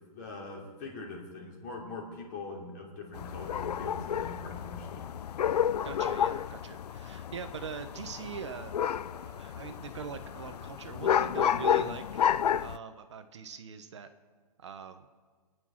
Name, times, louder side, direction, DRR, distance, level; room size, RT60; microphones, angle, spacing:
voice 1, 0.1-5.1, left 3 dB, 25° left, -1 dB, 3.0 m, -42 dB
sound 1, 3.1-12.8, left 9 dB, 80° left, 0.5 m, -31 dB
voice 2, 5.8-8.8 9.1-12.3 12.6-14.1 14.6-15.1, right 7 dB, 45° right, 8 dB, 0.9 m, -42 dB
29.0 x 10.0 x 4.5 m, 1.5 s
hypercardioid pair, 175°, 20 cm